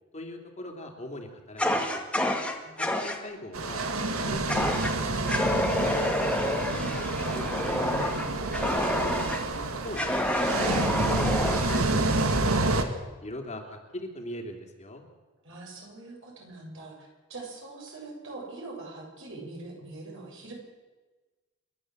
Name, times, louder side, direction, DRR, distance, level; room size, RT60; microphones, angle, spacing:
voice 1, 0.1-2.0 2.7-3.9 4.2-8.2 9.6-15.0, left 1 dB, 35° left, 2 dB, 3.0 m, -42 dB
Fire, 1.6-3.2 4.5-4.9 5.3-9.4 9.9-11.8, left 1 dB, 5° left, 2.0 m, -28 dB
sound 1, 3.5-12.8, right 2 dB, 90° right, 2.0 m, -28 dB
voice 2, 15.4-20.5, right 2 dB, 65° right, -1 dB, 7.5 m, -43 dB
29.0 x 12.5 x 7.9 m, 1.3 s
head